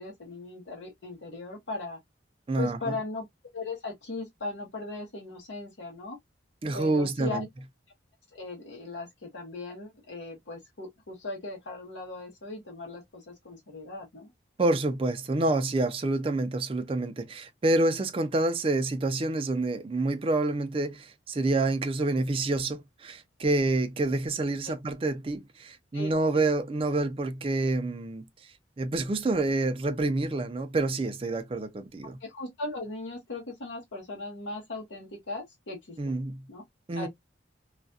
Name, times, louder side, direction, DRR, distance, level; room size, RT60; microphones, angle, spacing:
voice 1, 0.0-2.0 2.6-3.2 3.5-6.2 6.7-7.4 8.3-14.3 24.6-24.7 25.9-26.4 32.0-36.0 36.5-36.6 36.9-37.1, left 3 dB, 85° left, 0.8 m, -38 dB
voice 2, 2.5-3.0 6.6-7.5 14.6-28.2 28.8-32.2 36.0-36.4 36.9-37.1, right 2 dB, 30° right, 0.4 m, -28 dB
2.4 x 2.1 x 2.5 m
head